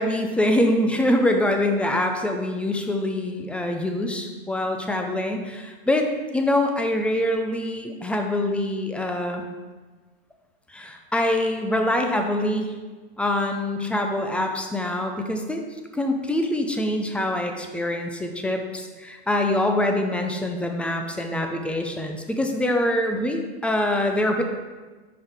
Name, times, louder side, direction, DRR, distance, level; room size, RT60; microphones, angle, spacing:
voice 1, 0.0-6.1 6.3-9.5 10.7-12.8 13.2-15.6 15.9-24.4, left 1 dB, 5° left, 4 dB, 0.4 m, -24 dB
5.6 x 5.3 x 3.4 m, 1.3 s
hypercardioid pair, 120°, 32 cm